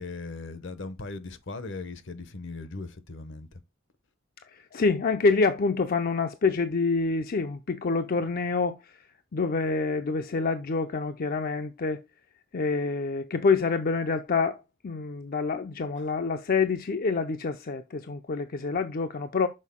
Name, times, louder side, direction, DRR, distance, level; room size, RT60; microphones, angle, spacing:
voice 1, 0.0-3.5 16.0-16.1, left 3 dB, 65° left, 0.9 m, -38 dB
voice 2, 4.7-8.8 9.3-12.0 12.5-14.6 14.8-19.5, left 4 dB, 45° left, 0.5 m, -26 dB
6.4 x 4.5 x 3.5 m
head